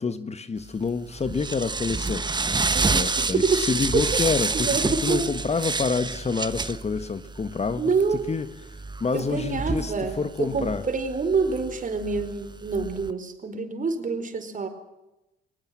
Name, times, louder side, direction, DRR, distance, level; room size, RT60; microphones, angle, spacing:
voice 1, 0.0-2.3 2.9-7.9 8.3-10.8, left 4 dB, 35° left, 1.5 m, -28 dB
sound 1, 0.7-13.1, right 3 dB, 20° right, 1.2 m, -29 dB
voice 2, 2.7-3.6 3.9-4.2 4.5-5.2 7.8-8.3 9.1-14.7, right 4 dB, 40° right, 4.6 m, -27 dB
22.5 x 20.0 x 7.7 m
cardioid pair, 90°, 20 cm